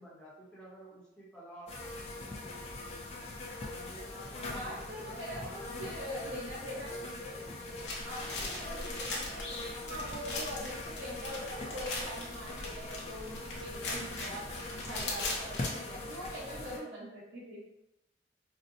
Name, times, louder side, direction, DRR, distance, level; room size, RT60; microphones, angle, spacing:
voice 1, 0.0-3.3 3.6-6.1, right 1 dB, 5° left, -7 dB, 0.9 m, -52 dB
sound 1, 1.7-16.8, left 2 dB, 35° left, 0.4 m, -42 dB
voice 2, 4.5-14.5 14.8-17.7, equal, 75° right, -7 dB, 1.0 m, -43 dB
sound 2, 7.8-15.7, left 2 dB, 65° left, 0.8 m, -40 dB
4.0 x 2.1 x 2.6 m, 0.90 s
head